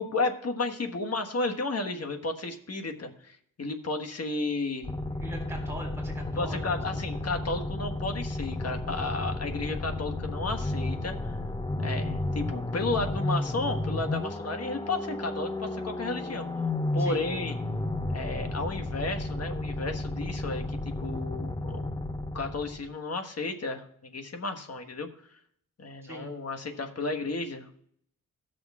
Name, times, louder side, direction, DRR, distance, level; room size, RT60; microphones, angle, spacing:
voice 1, 0.0-4.9 6.4-11.4 11.8-16.5 16.9-17.5 18.1-21.8 22.3-25.4 25.8-27.7, left 3 dB, 45° left, 5 dB, 1.4 m, -33 dB
sound 1, 4.8-22.9, left 2 dB, 15° left, 0.7 m, -32 dB
voice 2, 5.2-7.2 17.0-17.2 26.0-26.3, equal, 5° right, 0 dB, 3.7 m, -42 dB
17.0 x 6.4 x 3.6 m, 0.66 s
wide cardioid pair, 95°, 34 cm